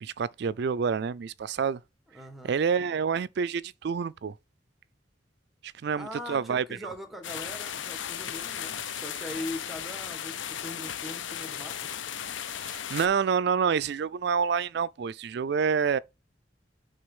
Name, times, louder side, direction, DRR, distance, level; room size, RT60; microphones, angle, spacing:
voice 1, 0.0-1.8 2.4-4.3 5.6-6.6 12.6-16.0, right 6 dB, 60° right, 0.4 m, -28 dB
voice 2, 2.1-2.6 5.9-11.9, left 1 dB, ahead, 1.7 m, -41 dB
sound 1, 7.2-13.1, left 9 dB, 90° left, 0.7 m, -36 dB
6.3 x 3.9 x 6.1 m
head